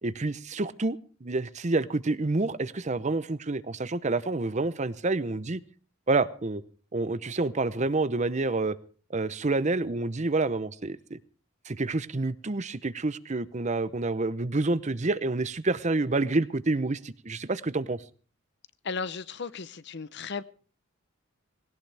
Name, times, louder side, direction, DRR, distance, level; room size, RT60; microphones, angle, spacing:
voice 1, 0.0-5.6 6.1-6.6 6.9-8.8 9.1-11.2 11.7-18.0, right 2 dB, 35° right, 0.7 m, -28 dB
voice 2, 18.8-20.4, left 5 dB, 55° left, 0.8 m, -35 dB
19.0 x 18.0 x 3.4 m
head